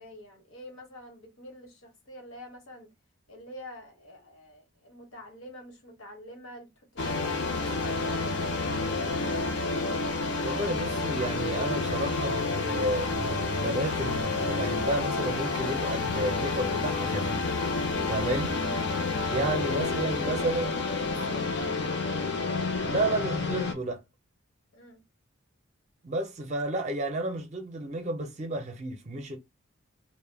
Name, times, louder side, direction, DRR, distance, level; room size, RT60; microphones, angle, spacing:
voice 1, 0.0-2.9 3.3-9.2 20.6-20.7 21.0-21.8 24.7-25.0, equal, 80° left, 1.0 m, -46 dB
sound 1, 7.0-23.7, left 3 dB, 55° left, 0.5 m, -29 dB
voice 2, 10.4-17.5 18.1-18.5 19.3-20.8 22.8-24.0 26.0-29.4, right 1 dB, 35° right, 0.5 m, -31 dB
2.2 x 2.1 x 3.3 m
head